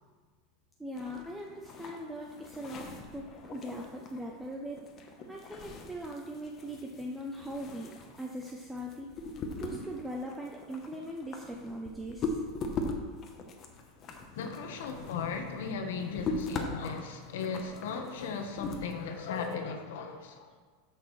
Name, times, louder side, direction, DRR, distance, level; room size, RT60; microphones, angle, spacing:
voice 1, 0.8-7.9 8.2-9.3 9.6-12.4, equal, 5° right, -1 dB, 0.6 m, -40 dB
sound 1, 1.0-19.5, left 3 dB, 25° left, 0.9 m, -41 dB
voice 2, 14.4-20.5, left 5 dB, 85° left, 4 dB, 1.2 m, -36 dB
13.0 x 6.2 x 3.2 m, 1.5 s
supercardioid pair, 170°, 0 cm